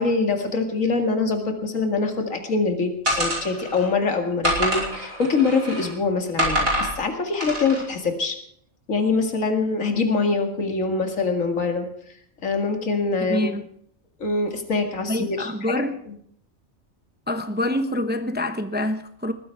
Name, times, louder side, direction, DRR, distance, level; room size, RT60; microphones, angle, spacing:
voice 1, 0.0-8.4 8.9-11.9 12.4-13.5 14.2-16.2, left 4 dB, 70° left, 2.5 m, -24 dB
sound 1, 3.1-3.8 4.4-5.9 6.4-6.9 7.4-7.8, equal, 90° right, 5.6 m, -25 dB
voice 2, 13.3-13.6 15.1-16.0 17.3-19.3, left 1 dB, 10° right, 0.7 m, -26 dB
20.0 x 15.0 x 4.6 m
omnidirectional pair, 1.4 m